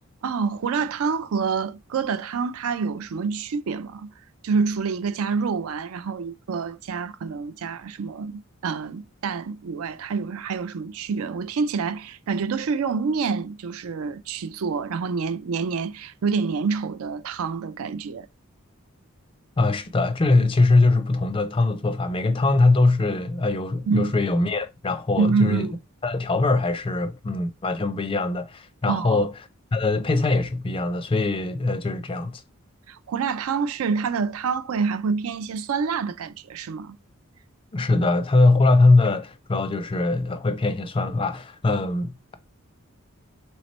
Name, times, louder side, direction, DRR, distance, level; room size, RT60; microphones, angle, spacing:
voice 1, 0.2-4.1 4.4-18.3 23.9-24.1 25.2-25.8 28.9-29.2 32.9-37.0, right 5 dB, 80° right, 0.4 m, -27 dB
voice 2, 19.6-25.7 26.0-29.3 29.7-32.4 37.7-42.4, left 2 dB, 25° left, 0.4 m, -22 dB
3.3 x 3.1 x 4.1 m
head